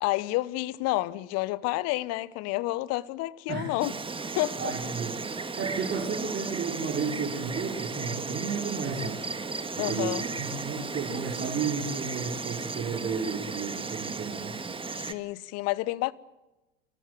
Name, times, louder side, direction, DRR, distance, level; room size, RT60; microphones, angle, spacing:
voice 1, 0.0-3.9 4.4-4.7 9.8-10.2 15.0-16.1, left 19 dB, 55° left, 1.0 m, -29 dB
Insect, 3.8-15.1, right 4 dB, 15° right, 1.7 m, -35 dB
voice 2, 4.6-5.2 5.6-9.3 9.8-14.6, right 5 dB, 35° right, 4.0 m, -32 dB
24.5 x 18.0 x 7.7 m
hypercardioid pair, 80°, 31 cm